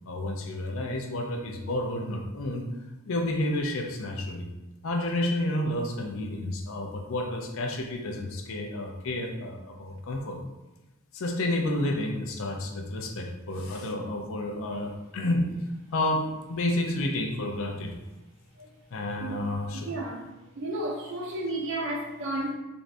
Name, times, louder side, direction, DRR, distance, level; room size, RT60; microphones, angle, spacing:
voice 1, 0.1-2.7 3.1-4.5 4.8-10.4 11.1-15.5 15.9-17.9 18.9-19.9, left 1 dB, 65° left, 2 dB, 0.4 m, -30 dB
voice 2, 19.9-20.2 20.6-22.5, right 1 dB, 55° right, -2 dB, 0.5 m, -32 dB
2.5 x 2.5 x 3.3 m, 1.0 s
head